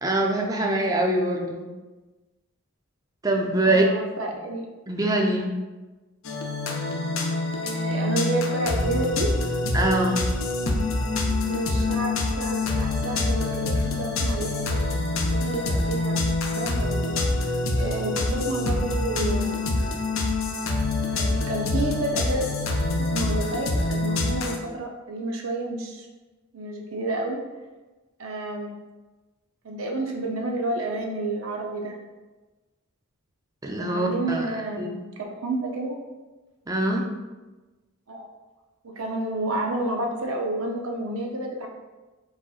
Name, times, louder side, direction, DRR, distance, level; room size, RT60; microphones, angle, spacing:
voice 1, 0.0-1.6 3.2-3.9 4.9-5.5 9.7-10.2 33.6-34.9 36.7-37.0, right 1 dB, 15° right, 1 dB, 0.5 m, -23 dB
voice 2, 3.6-4.7 7.6-9.3 11.4-14.7 15.3-19.6 21.1-22.4 23.0-26.1 26.5-27.4 28.2-28.7 29.6-32.0 33.8-36.0 38.1-38.3 38.8-41.7, right 2 dB, 75° right, 1 dB, 0.6 m, -30 dB
sound 1, 6.2-24.6, left 2 dB, 70° left, 0.6 m, -26 dB
4.8 x 4.2 x 2.4 m, 1.2 s
head